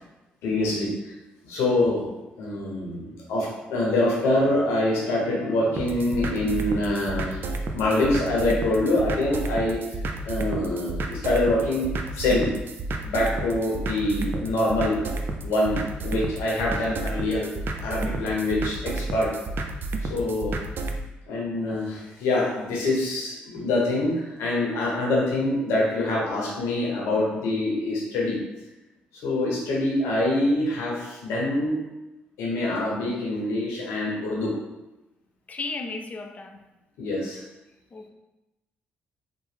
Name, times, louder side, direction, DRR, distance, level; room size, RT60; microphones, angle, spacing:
voice 1, 0.4-1.1 1.4-2.1 2.4-7.4 7.7-9.8 10.2-12.5 13.0-14.9 15.4-17.5 17.8-19.3 20.0-20.6 21.3-28.4 29.2-31.8 32.4-34.5 37.0-37.4, left 2 dB, 80° left, -3 dB, 0.8 m, -25 dB
sound 1, 5.8-21.0, right 2 dB, 55° right, 0.4 m, -31 dB
voice 2, 35.5-36.7 37.9-38.1, left 3 dB, 35° left, 5 dB, 0.4 m, -34 dB
3.0 x 2.0 x 3.3 m, 1.0 s
supercardioid pair, 60°, 4 cm